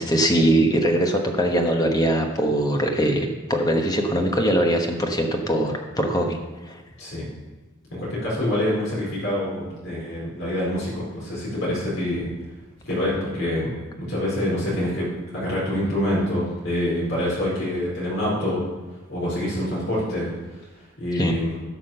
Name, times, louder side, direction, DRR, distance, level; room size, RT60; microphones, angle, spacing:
voice 1, 0.0-6.4 6.7-6.8 21.1-21.4, right 1 dB, 20° left, 3 dB, 1.1 m, -22 dB
voice 2, 7.0-7.3 7.9-12.3 12.8-13.7 14.0-15.1 15.3-18.7 19.1-20.3 21.0-21.6, left 1 dB, 60° left, -7 dB, 4.4 m, -26 dB
11.5 x 6.1 x 6.6 m, 1.2 s
head